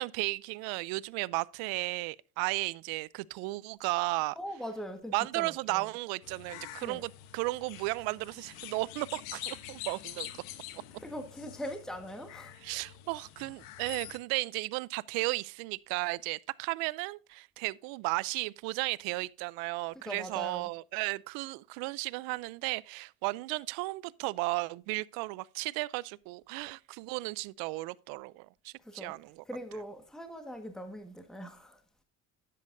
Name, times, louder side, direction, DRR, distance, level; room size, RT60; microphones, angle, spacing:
voice 1, 0.0-4.4 5.1-10.3 12.6-29.4, right 23 dB, 80° right, 0.5 m, -34 dB
voice 2, 4.4-5.9 6.8-7.0 11.0-12.5 19.9-20.7 28.8-29.2 29.4-31.8, equal, ahead, 1.5 m, -41 dB
sound 1, 6.2-14.2, left 12 dB, 85° left, 1.1 m, -46 dB
10.5 x 8.5 x 2.6 m
supercardioid pair, 100°, 36 cm